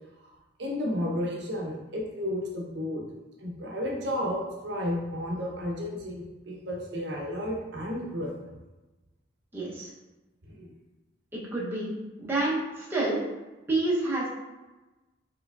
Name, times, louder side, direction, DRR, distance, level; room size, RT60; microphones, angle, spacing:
voice 1, 0.6-3.0 3.4-8.6 10.4-10.7, left 1 dB, 60° right, -2 dB, 0.7 m, -32 dB
voice 2, 9.5-9.9 11.3-11.9 12.2-13.2 13.7-14.3, right 2 dB, 10° right, -7 dB, 0.7 m, -28 dB
4.8 x 3.1 x 2.3 m, 1.1 s
head